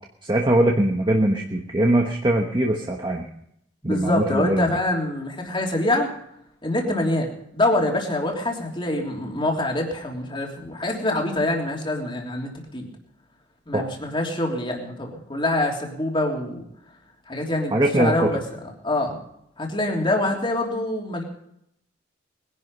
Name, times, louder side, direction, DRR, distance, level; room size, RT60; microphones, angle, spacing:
voice 1, 0.2-3.3 3.8-4.7 13.7-13.8 17.7-18.3, right 1 dB, 25° right, 1 dB, 1.3 m, -21 dB
voice 2, 3.8-6.1 6.6-7.3 7.5-12.9 13.7-16.6 17.3-18.4 18.8-19.2 19.6-21.2, left 1 dB, 25° left, 0 dB, 3.2 m, -25 dB
21.0 x 11.5 x 5.5 m, 0.75 s
head